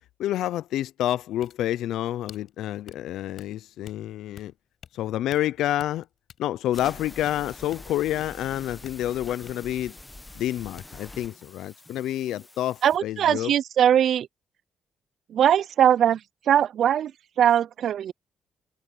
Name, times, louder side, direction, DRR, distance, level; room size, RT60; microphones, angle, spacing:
voice 1, 0.2-4.5 4.9-6.1 6.4-10.0 10.3-13.5, left 13 dB, 85° left, 0.5 m, -28 dB
sound 1, 1.4-10.5 10.8-10.9, left 9 dB, 60° left, 7.7 m, -51 dB
sound 2, 6.7-13.0, left 2 dB, 15° left, 1.0 m, -45 dB
voice 2, 12.8-14.3 15.3-16.2 16.5-17.1 17.4-18.1, right 9 dB, 65° right, 0.4 m, -20 dB
cardioid pair, 90°, 0 cm